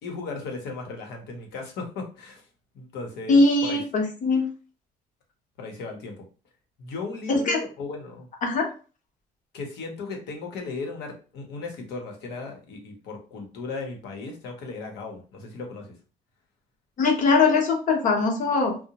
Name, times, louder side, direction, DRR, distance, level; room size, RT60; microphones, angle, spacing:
voice 1, 0.0-2.4 2.7-3.8 5.6-6.2 6.8-8.3 9.5-15.9, left 3 dB, 80° left, 2 dB, 0.8 m, -36 dB
voice 2, 3.3-4.5 7.3-7.6 8.4-8.7 17.0-18.9, left 3 dB, 50° left, 2 dB, 0.8 m, -21 dB
2.7 x 2.0 x 2.9 m, 0.36 s
cardioid pair, 110°, 17 cm